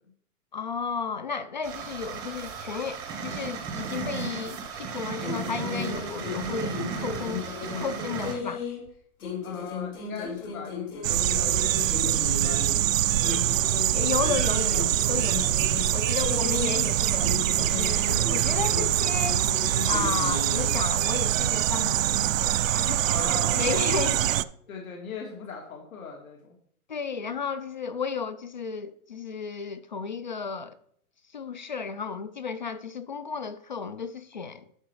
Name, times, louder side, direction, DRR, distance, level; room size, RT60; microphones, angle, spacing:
voice 1, 0.5-8.6 13.9-15.5 15.9-17.3 17.6-19.4 19.8-23.2 23.5-24.2 26.9-30.7 31.3-34.6, left 5 dB, 35° left, 0.4 m, -33 dB
sound 1, 1.6-8.3, right 6 dB, 10° right, 0.7 m, -35 dB
sound 2, 5.2-8.9 9.2-12.8 13.2-16.9 17.2-20.8, left 5 dB, 85° left, 3.9 m, -36 dB
voice 2, 9.4-13.8 16.2-16.5 23.0-24.4 24.7-26.6, left 5 dB, 65° left, 2.5 m, -40 dB
sound 3, 11.0-24.4, right 13 dB, 65° right, 0.5 m, -24 dB
11.0 x 6.9 x 4.8 m
hypercardioid pair, 170°, 43 cm